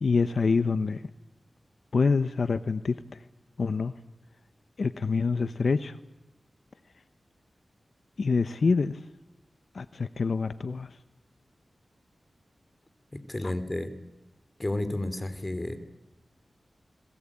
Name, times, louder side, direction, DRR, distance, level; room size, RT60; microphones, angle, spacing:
voice 1, 0.0-1.0 1.9-3.2 3.6-3.9 4.8-6.0 8.2-9.0 9.7-10.9 13.4-13.5, left 4 dB, 70° left, 13 dB, 0.9 m, -26 dB
voice 2, 13.3-13.9 14.6-15.8, left 1 dB, 25° left, 11 dB, 3.2 m, -31 dB
29.5 x 21.5 x 8.7 m, 0.97 s
wide cardioid pair, 75°, 0 cm